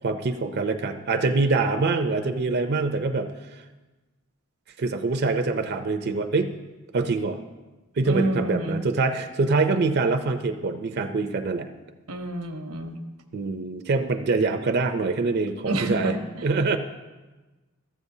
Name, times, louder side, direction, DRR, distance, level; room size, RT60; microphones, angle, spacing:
voice 1, 0.0-3.6 4.8-6.5 6.9-7.4 8.0-11.7 13.3-16.2 16.4-16.8, right 3 dB, 50° right, 8 dB, 0.5 m, -24 dB
voice 2, 8.1-8.8 12.1-13.0 15.6-16.4, right 1 dB, 85° right, 5 dB, 0.9 m, -28 dB
14.0 x 7.5 x 2.7 m, 1.2 s
head